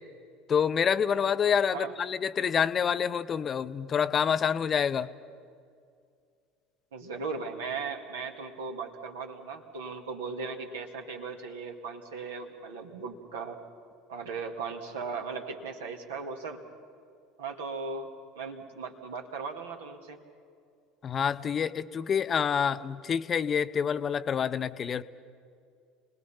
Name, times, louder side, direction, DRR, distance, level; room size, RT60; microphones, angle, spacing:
voice 1, 0.5-5.1 21.0-25.0, left 7 dB, 35° left, 13 dB, 0.7 m, -27 dB
voice 2, 6.9-13.6 14.1-16.6 17.4-18.1 18.4-20.2, right 4 dB, 70° right, 3 dB, 2.2 m, -37 dB
29.5 x 20.5 x 5.7 m, 2.3 s
figure-of-eight pair, 65°, 0 cm